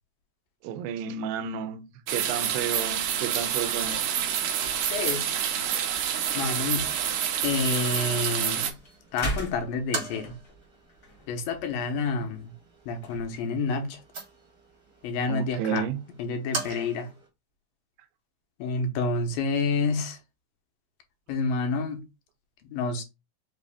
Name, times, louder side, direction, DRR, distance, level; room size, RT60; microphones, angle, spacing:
voice 1, 0.6-4.1 15.3-16.0, right 8 dB, 90° right, 2.4 m, -32 dB
sound 1, 2.1-8.7, right 9 dB, 75° right, 1.8 m, -28 dB
sound 2, 3.7-15.1, right 1 dB, 50° left, 0.9 m, -43 dB
sound 3, 4.3-17.3, right 3 dB, 50° right, 1.1 m, -43 dB
voice 2, 4.9-5.3 6.3-6.9 7.4-8.7 9.1-10.4 11.3-12.5 12.9-14.0 15.0-15.9 16.2-17.1 18.6-20.2 21.3-22.0 22.6-23.0, left 4 dB, 85° left, 2.7 m, -28 dB
6.0 x 2.5 x 3.4 m
omnidirectional pair, 4.0 m